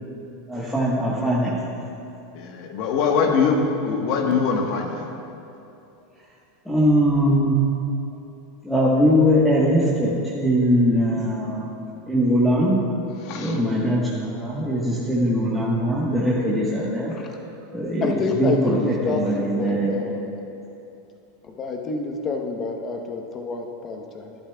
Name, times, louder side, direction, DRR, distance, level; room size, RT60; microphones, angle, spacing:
voice 1, 0.5-1.6 6.6-7.6 8.6-11.7 12.1-12.8 13.3-17.1 17.7-18.1 18.4-20.2, equal, 5° left, -8 dB, 1.3 m, -21 dB
voice 2, 1.0-1.5 2.3-5.1 13.2-13.6 18.3-18.4, left 5 dB, 55° left, 2 dB, 1.3 m, -23 dB
voice 3, 18.0-20.3 21.4-24.4, left 3 dB, 30° left, 2 dB, 1.0 m, -28 dB
11.5 x 11.5 x 2.3 m, 2.8 s
supercardioid pair, 120°, 0 cm